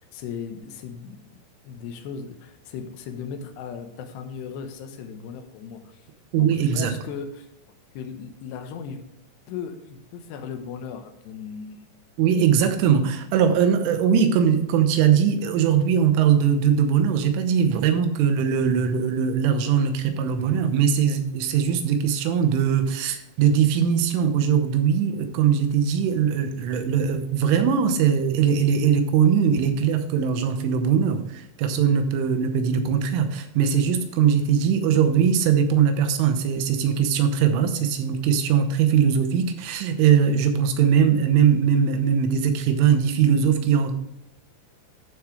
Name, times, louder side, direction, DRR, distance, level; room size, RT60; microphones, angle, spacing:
voice 1, 0.1-1.2 1.6-6.1 6.3-7.5 7.9-9.0 9.5-11.8 13.3-13.6, left 6 dB, 75° left, 6 dB, 2.8 m, -37 dB
voice 2, 6.3-6.9 12.2-44.0, right 7 dB, 85° right, 7 dB, 3.4 m, -21 dB
12.5 x 7.3 x 3.3 m, 0.79 s
omnidirectional pair, 5.7 m